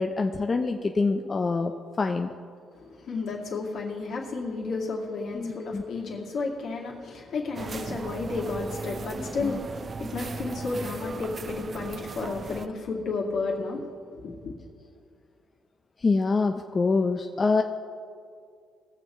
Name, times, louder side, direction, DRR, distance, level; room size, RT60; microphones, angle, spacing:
voice 1, 0.0-1.7 2.0-2.3 5.3-5.8 9.4-9.5 16.0-17.6, left 3 dB, 35° left, 4 dB, 0.6 m, -25 dB
voice 2, 2.7-14.5, left 3 dB, 70° left, -2 dB, 2.4 m, -32 dB
sound 1, 7.5-12.7, right 4 dB, 40° right, 0.4 m, -37 dB
19.5 x 7.3 x 4.4 m, 2.3 s
cardioid pair, 90°, 0 cm